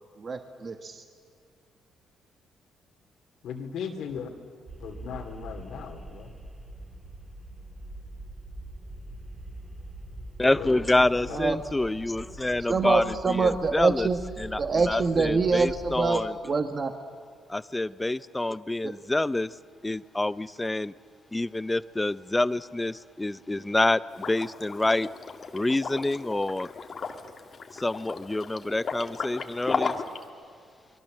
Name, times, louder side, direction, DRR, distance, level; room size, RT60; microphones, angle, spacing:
voice 1, 0.2-1.0 11.3-11.6 12.7-14.2 14.6-16.9 18.8-18.9, right 4 dB, 40° right, 7 dB, 1.4 m, -25 dB
voice 2, 3.4-4.3 4.8-6.3 10.4-11.4, left 6 dB, 75° left, 4 dB, 2.7 m, -37 dB
sound 1, 4.7-16.0, right 1 dB, 20° right, 4.1 m, -43 dB
voice 3, 10.4-14.1 14.4-16.3 17.5-19.5 19.8-20.9 21.3-24.0 24.3-25.1 25.5-26.7 27.7-30.0, left 2 dB, 15° left, 17 dB, 0.6 m, -27 dB
Liquid, 24.1-30.2, left 5 dB, 45° left, 1.9 m, -35 dB
28.5 x 23.0 x 7.5 m, 2.2 s
cardioid pair, 90°, 0 cm